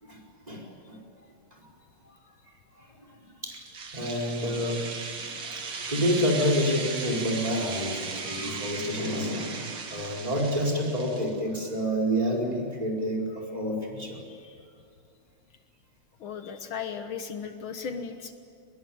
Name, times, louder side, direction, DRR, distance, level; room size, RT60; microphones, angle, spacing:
voice 1, 0.5-1.0 3.4-3.6 3.9-14.2, equal, 15° right, -1 dB, 4.7 m, -29 dB
sound 1, 3.5-11.4, right 4 dB, 90° right, 3.0 m, -37 dB
voice 2, 16.2-18.3, left 6 dB, 70° left, 7 dB, 2.1 m, -36 dB
24.0 x 21.0 x 9.5 m, 2.2 s
omnidirectional pair, 2.3 m